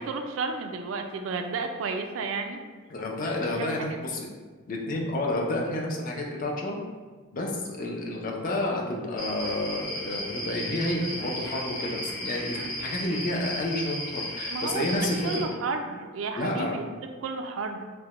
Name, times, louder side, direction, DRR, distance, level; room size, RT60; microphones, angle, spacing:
voice 1, 0.0-2.6 3.5-4.2 14.5-16.8 17.2-17.8, right 4 dB, 75° right, 6 dB, 0.3 m, -32 dB
voice 2, 2.9-4.3 4.7-6.8 7.3-15.5 16.4-16.7, left 1 dB, 45° left, 0 dB, 0.4 m, -30 dB
sound 1, 9.2-15.4, left 1 dB, 75° left, 0.8 m, -35 dB
3.2 x 2.1 x 2.9 m, 1.4 s
head